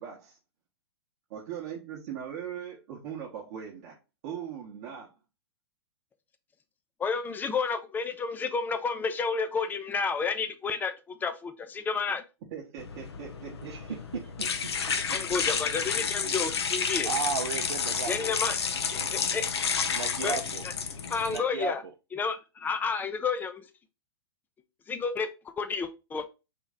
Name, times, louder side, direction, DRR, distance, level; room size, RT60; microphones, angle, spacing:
voice 1, 0.0-0.4 1.3-4.0 4.2-5.1 12.5-13.8, right 9 dB, 45° right, 0.9 m, -40 dB
voice 2, 7.0-10.9 11.2-12.2 15.1-17.1 18.1-19.5 20.2-20.4 20.6-20.7 21.1-21.8 22.1-23.6 24.9-26.3, left 5 dB, 15° left, 0.4 m, -31 dB
sound 1, 12.8-21.4, left 6 dB, 70° left, 0.7 m, -31 dB
voice 3, 13.6-14.0 15.8-16.3 17.0-18.4 19.9-20.6 21.3-21.7, right 6 dB, 75° right, 0.5 m, -34 dB
3.6 x 3.1 x 3.7 m
figure-of-eight pair, 110°, 14 cm